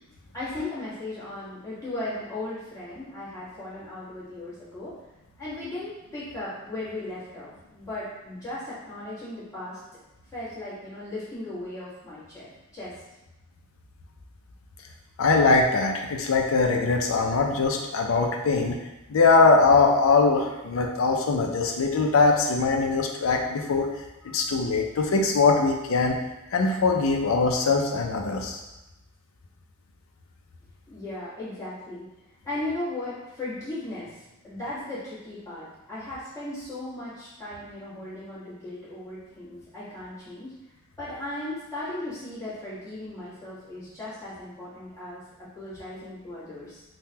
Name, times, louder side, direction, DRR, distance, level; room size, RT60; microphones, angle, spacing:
voice 1, 0.3-4.9 5.4-9.8 10.3-12.5 12.7-12.9 30.9-32.1 32.4-40.5 41.0-46.8, left 2 dB, 15° left, -12 dB, 1.4 m, -37 dB
voice 2, 15.2-18.8 19.1-23.9 24.2-26.2 26.5-28.6, left 4 dB, 80° left, 2 dB, 0.5 m, -22 dB
3.5 x 2.2 x 2.8 m, 0.99 s
head